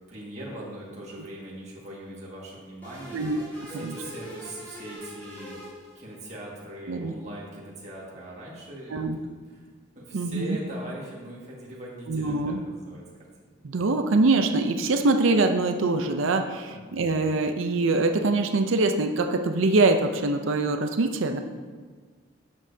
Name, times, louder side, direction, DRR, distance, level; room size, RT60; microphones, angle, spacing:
voice 1, 0.1-3.2 3.7-5.5 6.0-9.0 9.5-9.7 10.0-13.0 13.4-13.5 16.7-17.1, right 1 dB, 35° right, -5 dB, 1.8 m, -40 dB
sound 1, 2.8-6.4, equal, 10° left, 2.6 m, -43 dB
voice 2, 3.1-3.4 3.7-4.0 6.9-7.1 8.9-9.2 10.1-10.6 12.1-12.6 13.6-21.4, right 3 dB, 80° right, 6 dB, 0.5 m, -24 dB
11.5 x 7.1 x 2.8 m, 1.5 s
head